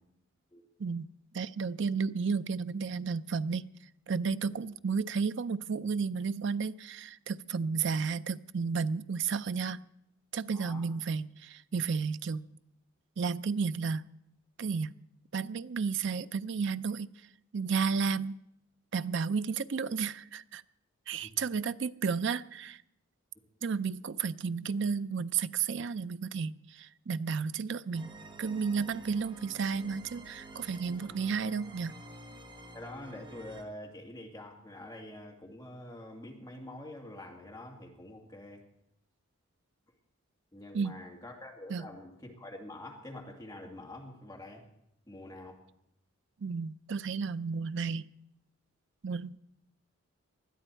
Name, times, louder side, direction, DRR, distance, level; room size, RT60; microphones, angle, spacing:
voice 1, 1.3-3.7 4.1-9.8 10.3-12.5 13.2-14.1 14.6-14.9 15.3-17.1 17.5-18.4 18.9-20.6 21.1-22.8 23.6-31.9 40.7-41.0 41.7-41.9 46.4-48.1 49.0-49.3, right 5 dB, 55° right, 14 dB, 0.4 m, -32 dB
voice 2, 10.5-11.0 21.2-21.4 32.7-38.6 40.5-44.7 45.1-45.6, left 1 dB, 15° left, 0 dB, 2.3 m, -46 dB
sound 1, 27.9-33.6, right 2 dB, 20° right, 1.0 m, -49 dB
20.0 x 12.5 x 4.5 m, 0.79 s
head